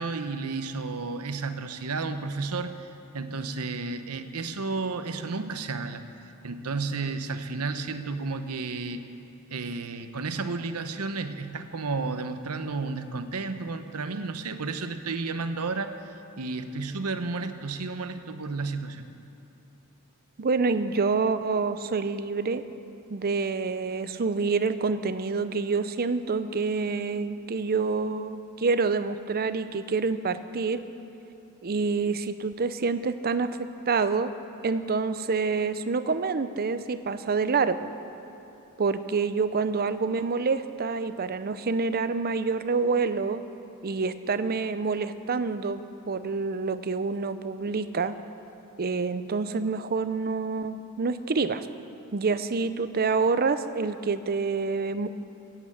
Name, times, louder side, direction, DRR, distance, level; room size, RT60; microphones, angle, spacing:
voice 1, 0.0-6.0 6.4-9.1 9.5-19.1, right 3 dB, 80° right, 9 dB, 0.9 m, -32 dB
voice 2, 20.4-22.6 23.1-30.8 31.6-34.3 34.6-37.9 38.8-43.4 43.8-48.2 48.8-51.7 52.1-55.1, right 4 dB, 45° right, 12 dB, 0.6 m, -27 dB
15.5 x 8.9 x 8.7 m, 2.9 s
head